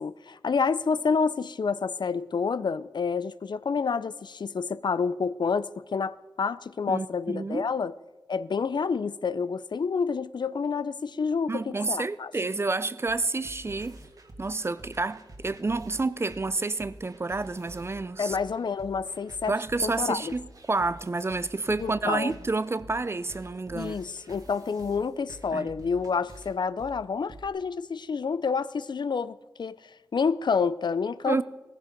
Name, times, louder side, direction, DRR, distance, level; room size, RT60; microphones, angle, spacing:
voice 1, 0.0-7.9 8.3-12.3 18.2-19.5 19.8-20.3 21.8-22.3 23.7-29.8 30.1-31.4, left 5 dB, 65° left, 0.5 m, -28 dB
voice 2, 6.9-7.7 11.5-14.0 14.4-18.4 19.5-24.0 25.5-25.7 31.3-31.4, right 3 dB, 30° right, 0.5 m, -29 dB
sound 1, 13.1-27.5, right 1 dB, 45° right, 1.9 m, -48 dB
18.0 x 15.0 x 5.2 m
wide cardioid pair, 115°, 8 cm